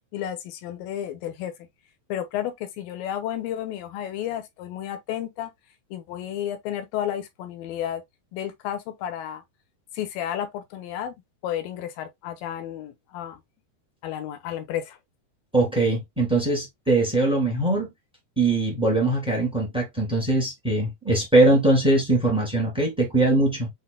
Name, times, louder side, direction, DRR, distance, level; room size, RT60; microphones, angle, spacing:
voice 1, 0.1-1.5 2.1-5.5 5.9-8.0 8.3-9.4 9.9-11.1 11.4-13.4 14.0-15.0, left 10 dB, 80° left, 2.5 m, -32 dB
voice 2, 15.5-17.9 18.4-23.7, right 2 dB, 5° right, 0.5 m, -21 dB
7.8 x 3.0 x 2.2 m
omnidirectional pair, 4.2 m